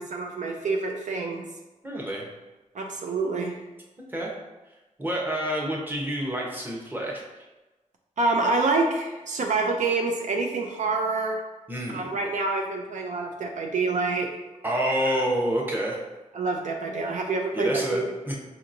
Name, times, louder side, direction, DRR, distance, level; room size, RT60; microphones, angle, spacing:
voice 1, 0.0-1.5 2.7-3.7 8.2-11.4 11.9-14.3 15.1-15.2 16.3-18.1, right 3 dB, 65° right, 2 dB, 0.4 m, -27 dB
voice 2, 1.8-2.3 4.1-4.3 5.0-7.2 11.7-12.1 14.6-16.0 17.5-18.4, right 1 dB, 15° right, -2 dB, 0.8 m, -28 dB
5.2 x 2.8 x 2.5 m, 1.1 s
wide cardioid pair, 120°, 13 cm